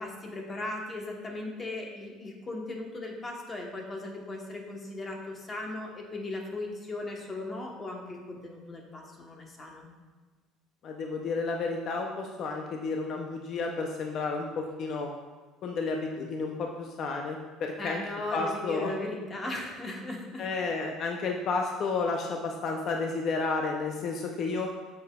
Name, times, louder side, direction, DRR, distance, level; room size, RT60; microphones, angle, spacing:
voice 1, 0.0-9.9 17.8-20.4, left 2 dB, 25° left, 0 dB, 1.1 m, -37 dB
voice 2, 10.8-15.1 15.6-18.0 18.3-18.9 20.4-24.7, left 4 dB, 45° left, 2 dB, 0.5 m, -31 dB
7.6 x 6.9 x 2.3 m, 1.3 s
cardioid pair, 145°, 0 cm